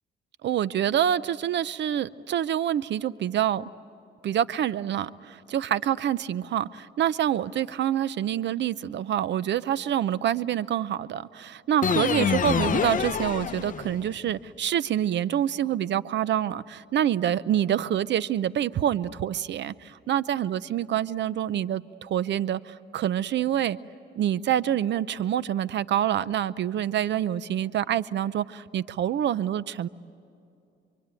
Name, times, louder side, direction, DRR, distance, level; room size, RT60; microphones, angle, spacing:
voice 1, 0.4-3.7 4.2-23.8 24.2-29.9, right 10 dB, 65° right, 18 dB, 0.7 m, -26 dB
sound 1, 11.8-14.1, left 7 dB, 40° left, 0.9 m, -26 dB
27.5 x 24.0 x 9.0 m, 2.5 s
cardioid pair, 90°, 20 cm